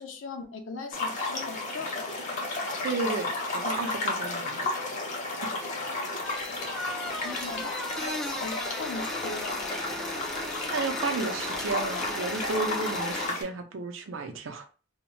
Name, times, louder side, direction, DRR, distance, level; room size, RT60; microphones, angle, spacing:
voice 1, 0.0-2.4 7.2-9.7, left 4 dB, 75° left, 5 dB, 0.6 m, -40 dB
sound 1, 0.9-13.4, left 2 dB, 40° left, 0.7 m, -32 dB
voice 2, 2.8-4.7 10.7-14.7, right 4 dB, 75° right, 6 dB, 0.5 m, -33 dB
sound 2, 6.2-13.3, equal, 5° left, 0.3 m, -37 dB
2.1 x 2.0 x 3.7 m, 0.36 s
head